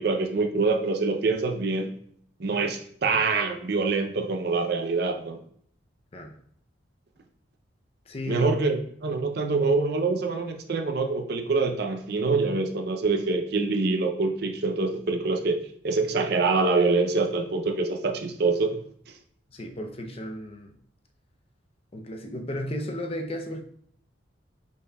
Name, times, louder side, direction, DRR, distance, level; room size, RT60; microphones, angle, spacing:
voice 1, 0.0-1.9 2.4-5.4 8.3-18.8, right 3 dB, 55° right, 5 dB, 0.5 m, -25 dB
voice 2, 8.1-8.5 19.5-20.7 21.9-23.6, equal, 30° left, 3 dB, 0.5 m, -34 dB
5.5 x 4.1 x 2.3 m, 0.62 s
head